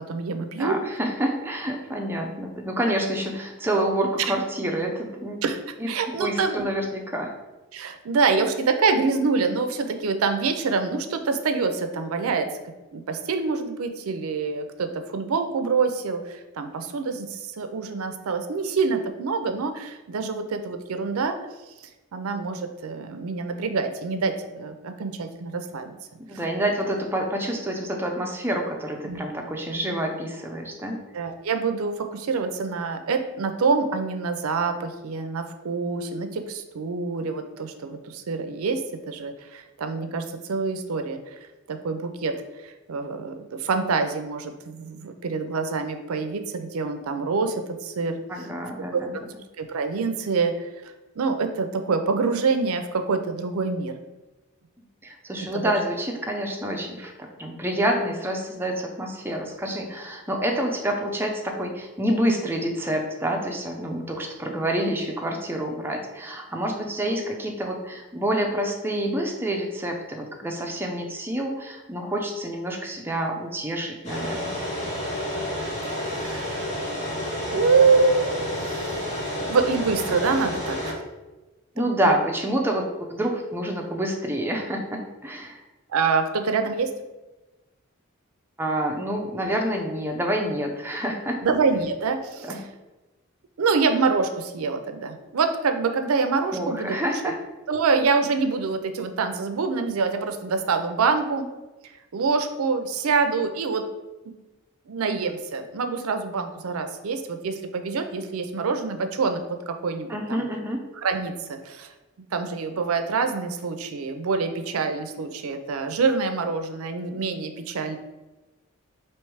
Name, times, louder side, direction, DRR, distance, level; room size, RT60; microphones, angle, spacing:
voice 1, 0.1-0.8 5.4-5.6 5.9-6.6 7.7-12.5 12.9-21.4 22.1-25.9 29.0-29.2 31.1-38.8 39.1-41.2 41.7-42.3 42.9-48.2 48.9-49.0 49.6-53.9 55.5-55.7 75.9-76.7 77.5-79.0 79.5-81.0 82.0-82.2 85.9-86.9 91.4-92.6 93.6-97.0 97.2-97.3 97.7-101.5 102.1-103.8 104.9-109.4 109.7-110.4 111.0-111.9 112.3-118.0, right 4 dB, 80° right, 7 dB, 0.5 m, -26 dB
voice 2, 0.6-5.4 5.8-5.9 6.2-7.3 26.3-31.0 48.3-49.1 55.0-74.6 81.8-85.6 88.6-91.4 92.4-92.6 96.5-97.4 110.1-110.8, right 1 dB, 10° right, 1 dB, 0.5 m, -28 dB
sound 1, 74.0-80.9, left 1 dB, 30° left, 1.3 m, -30 dB
3.2 x 3.0 x 4.6 m, 1.1 s
head